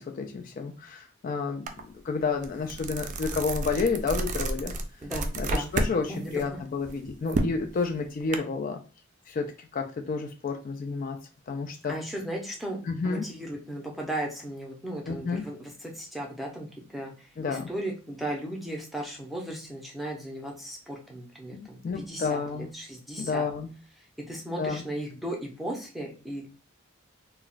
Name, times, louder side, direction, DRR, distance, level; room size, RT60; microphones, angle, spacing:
voice 1, 0.0-1.7 2.0-4.7 5.4-8.8 9.3-11.2 11.5-12.0 12.9-13.3 15.1-15.5 17.4-17.7 21.5-22.7 23.2-23.7 24.6-24.8, left 4 dB, 40° left, 4 dB, 0.3 m, -30 dB
sound 1, 1.7-1.8 2.2-6.0 6.3-8.4, right 2 dB, 40° right, 0.3 m, -30 dB
voice 2, 5.0-5.7 6.1-6.6 11.9-17.1 17.5-23.4 24.3-26.6, right 1 dB, ahead, -1 dB, 0.6 m, -36 dB
2.3 x 2.1 x 3.8 m, 0.36 s
head